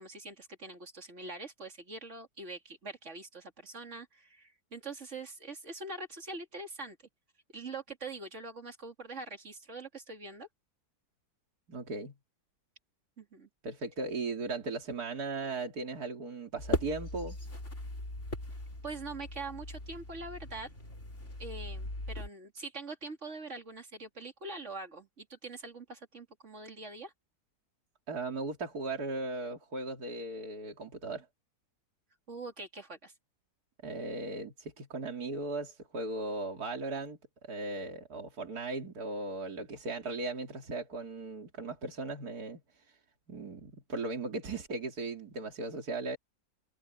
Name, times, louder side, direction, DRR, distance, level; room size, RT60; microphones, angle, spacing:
voice 1, 0.0-7.0 7.5-10.5 13.2-13.5 18.8-20.7 21.4-27.1 32.3-33.1, right 3 dB, 50° right, 3.1 m, -43 dB
voice 2, 11.7-12.1 13.6-17.4 28.1-31.3 33.8-37.2 37.5-42.6 43.3-46.2, right 3 dB, 75° right, 3.2 m, -37 dB
sound 1, 16.6-22.3, left 1 dB, 45° left, 5.8 m, -39 dB
omnidirectional pair, 1.7 m